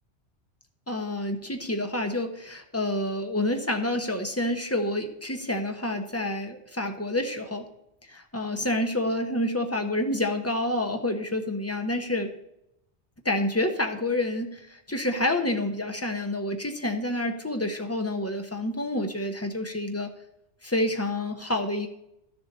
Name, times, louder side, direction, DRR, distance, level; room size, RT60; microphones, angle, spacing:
voice 1, 0.9-7.6 8.1-12.3 13.2-14.6 14.9-20.1 20.6-21.9, left 1 dB, 15° left, 4 dB, 1.0 m, -28 dB
12.0 x 7.1 x 4.1 m, 0.81 s
omnidirectional pair, 1.2 m